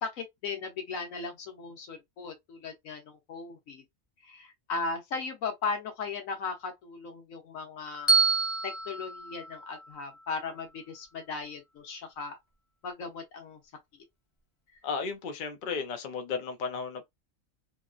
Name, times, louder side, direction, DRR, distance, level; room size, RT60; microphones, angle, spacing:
voice 1, 0.0-3.8 4.2-8.2 8.6-12.4 12.8-13.6 13.9-14.0, left 4 dB, 80° left, 1.3 m, -37 dB
Bell, 8.1-10.3, right 4 dB, 25° left, 0.9 m, -28 dB
voice 2, 14.8-17.0, left 5 dB, 55° left, 0.6 m, -34 dB
2.9 x 2.4 x 2.3 m
omnidirectional pair, 1.4 m